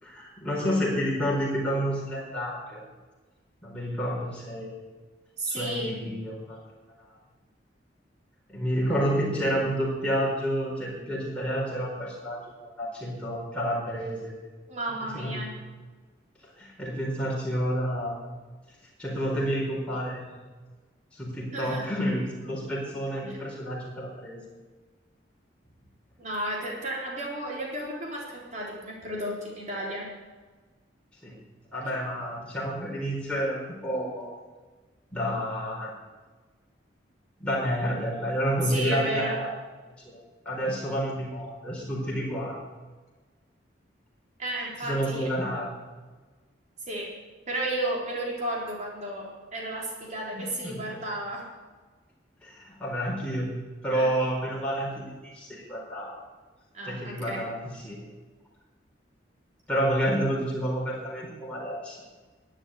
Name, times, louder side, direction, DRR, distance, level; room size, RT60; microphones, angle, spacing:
voice 1, 0.0-2.8 3.6-4.8 5.5-6.6 8.5-14.3 15.1-15.5 16.4-18.2 19.0-20.3 21.1-24.4 31.2-31.4 31.7-34.3 35.1-35.9 37.4-39.5 40.0-42.6 44.8-45.7 50.3-50.8 52.4-53.5 53.8-56.2 56.8-58.0 59.7-62.0, equal, 5° left, -5 dB, 4.4 m, -29 dB
voice 2, 5.4-6.0 14.7-15.5 21.5-21.9 23.1-23.4 26.2-30.1 38.6-39.4 44.4-45.3 46.9-47.1 47.5-51.5 53.9-54.1 56.7-57.4, right 1 dB, 40° right, -3 dB, 3.9 m, -33 dB
12.5 x 9.2 x 9.2 m, 1.3 s
head